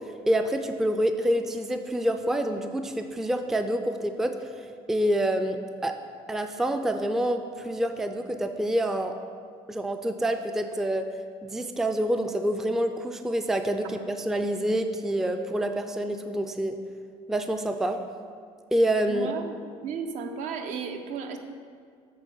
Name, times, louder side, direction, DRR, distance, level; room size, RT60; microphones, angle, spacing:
voice 1, 0.3-4.4 4.9-5.9 6.3-9.1 9.7-11.1 11.4-16.8 17.3-18.0 18.7-19.3, right 1 dB, 5° right, 6 dB, 0.3 m, -27 dB
voice 2, 19.1-19.5 19.8-21.4, right 6 dB, 65° right, 6 dB, 0.7 m, -34 dB
8.4 x 3.4 x 5.3 m, 2.1 s
cardioid pair, 105°, 13 cm